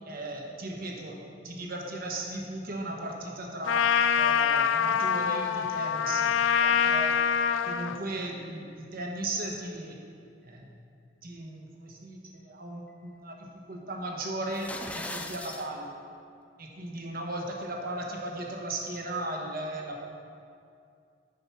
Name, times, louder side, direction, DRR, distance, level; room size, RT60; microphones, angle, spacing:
voice 1, 0.0-3.9 4.2-6.3 6.6-7.2 7.6-10.0 10.4-10.6 11.2-14.7 14.9-15.9 16.6-20.2, right 1 dB, 50° right, 0 dB, 1.2 m, -36 dB
Trumpet, 3.7-8.0, left 7 dB, 80° left, 0.3 m, -25 dB
sound 1, 14.4-15.7, left 2 dB, 5° left, 0.5 m, -38 dB
8.9 x 6.1 x 5.8 m, 2.4 s
head